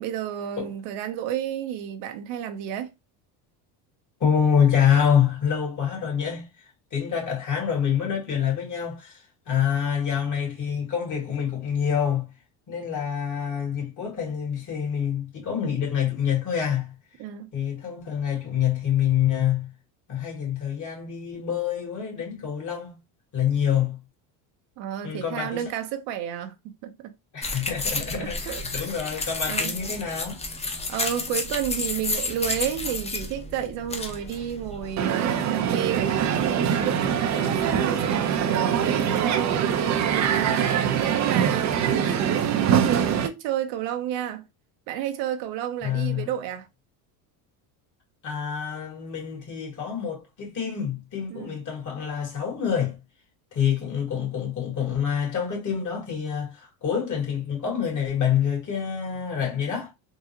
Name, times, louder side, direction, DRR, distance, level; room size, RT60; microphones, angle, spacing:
voice 1, 0.0-2.9 17.2-17.5 24.8-27.1 28.1-28.9 29.5-29.7 30.9-40.7 41.1-44.4 44.9-46.7 51.3-51.6, right 10 dB, 70° right, 0.8 m, -31 dB
voice 2, 4.2-6.5 6.9-12.3 12.7-16.9 17.5-19.7 20.1-23.0 23.3-24.0 25.0-25.6 27.3-30.4 45.8-46.3 48.2-53.0 53.5-59.9, left 8 dB, 40° left, 1.8 m, -26 dB
sound 1, 27.4-35.0, left 3 dB, 15° left, 0.5 m, -31 dB
Crowd, 35.0-43.3, right 8 dB, 35° right, 0.5 m, -23 dB
3.7 x 2.0 x 2.8 m
supercardioid pair, 105°, 49 cm